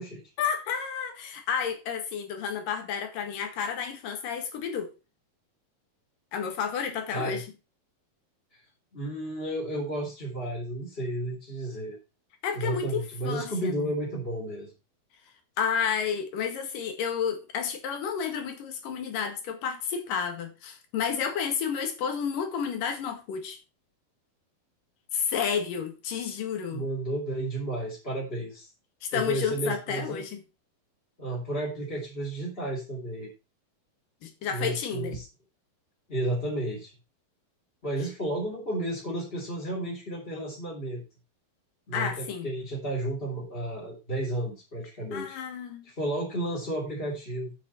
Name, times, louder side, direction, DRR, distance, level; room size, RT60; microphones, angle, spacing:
voice 1, 0.4-4.9 6.3-7.5 12.4-13.9 15.6-23.6 25.1-26.9 29.0-30.4 34.2-35.2 41.9-42.5 45.1-45.9, left 7 dB, 65° left, 3.4 m, -31 dB
voice 2, 7.1-7.4 8.5-8.6 8.9-12.0 12.5-14.7 26.7-28.7 29.1-30.2 31.2-33.3 34.5-35.2 36.1-36.9 37.8-41.0 41.9-45.4 45.8-47.5, right 1 dB, 15° left, 3.3 m, -32 dB
9.0 x 8.8 x 4.3 m
omnidirectional pair, 4.3 m